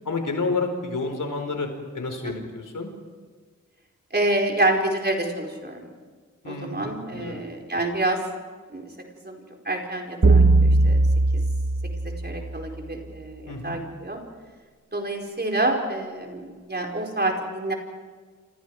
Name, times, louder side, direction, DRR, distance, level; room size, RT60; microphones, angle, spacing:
voice 1, 0.0-1.7 1.9-2.9 6.4-7.4 13.5-13.8, left 3 dB, 85° left, 4 dB, 4.7 m, -30 dB
voice 2, 4.1-5.9 6.5-8.2 8.7-8.9 9.2-9.4 9.6-11.0 11.3-11.4 12.0-14.2 14.9-17.7, right 2 dB, 35° right, 1 dB, 4.7 m, -27 dB
sound 1, 10.2-12.7, right 2 dB, 50° right, 1.9 m, -19 dB
28.0 x 27.5 x 4.9 m, 1.5 s
wide cardioid pair, 100°, 31 cm